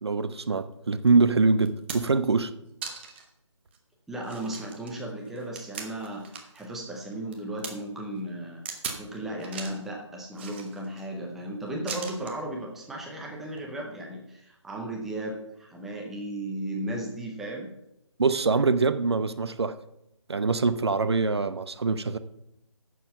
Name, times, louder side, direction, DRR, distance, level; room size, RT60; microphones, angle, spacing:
voice 1, 0.0-2.5 18.2-19.7 20.3-22.2, right 4 dB, 55° right, 12 dB, 0.8 m, -24 dB
sound 1, 1.1-1.2 1.6-2.3 2.8-3.3 3.7-3.8 4.2-6.7 7.0-7.7 8.7-9.1 9.4-9.8 10.3-11.0 11.9-12.4 13.5-13.6, right 6 dB, 20° right, 1.1 m, -39 dB
voice 2, 4.1-8.6 9.0-17.7, right 1 dB, ahead, -1 dB, 0.6 m, -35 dB
11.0 x 7.0 x 5.5 m, 0.82 s
figure-of-eight pair, 155°, 16 cm